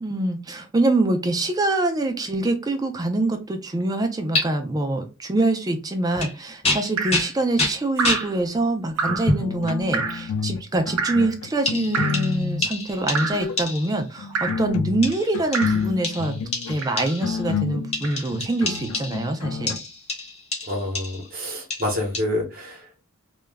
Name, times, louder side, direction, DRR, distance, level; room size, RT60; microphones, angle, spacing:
voice 1, 0.0-16.4 16.7-19.8, right 2 dB, 15° right, 5 dB, 0.3 m, -25 dB
sound 1, 4.3-4.4 6.1-6.4 6.6-8.3 9.3-9.5 10.3-10.5 11.7-14.0 15.0-17.4 17.9-19.3 19.7-21.3 21.7-22.2, left 2 dB, 30° left, 0.7 m, -28 dB
Drip, 7.0-7.3 8.0-8.3 9.0-9.3 9.9-10.3 11.0-11.3 11.9-12.3 13.1-13.5 14.3-14.7 15.5-15.9 16.8-17.1 18.0-18.2, right 5 dB, 80° right, 0.5 m, -27 dB
sound 2, 9.1-10.6 10.9-12.7 13.2-13.6 14.2-19.8, left 6 dB, 70° left, 0.3 m, -29 dB
voice 2, 20.7-22.8, left 1 dB, 40° right, 1 dB, 0.7 m, -27 dB
2.2 x 2.0 x 3.3 m, 0.29 s
head